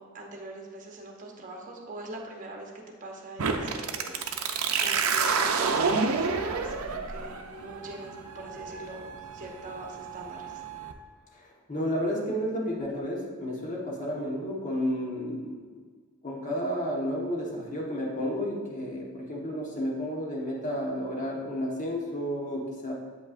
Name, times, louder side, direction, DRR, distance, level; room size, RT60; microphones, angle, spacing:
voice 1, 0.0-2.7 3.0-9.1 9.3-10.6, right 2 dB, 40° right, 0 dB, 0.9 m, -43 dB
sound 1, 3.4-10.9, right 5 dB, 85° right, 0.5 m, -29 dB
voice 2, 11.3-15.6 16.2-22.9, equal, 35° left, -3 dB, 1.3 m, -31 dB
8.0 x 5.4 x 2.5 m, 1.5 s
head